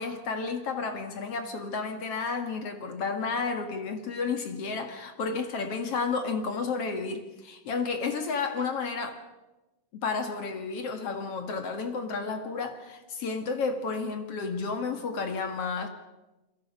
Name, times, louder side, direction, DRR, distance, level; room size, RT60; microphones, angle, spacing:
voice 1, 0.0-9.2 9.9-15.9, left 4 dB, 50° left, 2.2 m, -32 dB
29.0 x 21.5 x 5.4 m
omnidirectional pair, 4.3 m